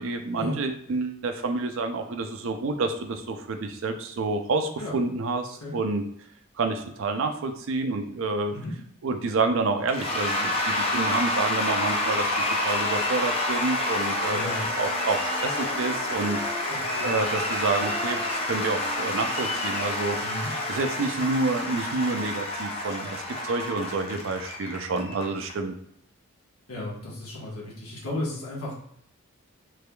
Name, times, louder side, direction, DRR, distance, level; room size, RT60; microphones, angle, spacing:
voice 1, 0.0-6.0 6.6-8.5 9.0-14.4 14.8-16.7 17.0-20.2 20.7-25.7, right 3 dB, 60° right, 6 dB, 0.4 m, -28 dB
Cheering / Applause / Crowd, 9.9-25.5, left 1 dB, 25° left, 0.4 m, -28 dB
sound 1, 14.1-21.0, equal, 20° right, 0.8 m, -40 dB
voice 2, 14.3-14.6 16.7-17.1 20.2-20.5 26.7-28.7, left 1 dB, 80° left, -4 dB, 1.1 m, -34 dB
3.4 x 3.2 x 2.2 m, 0.68 s
head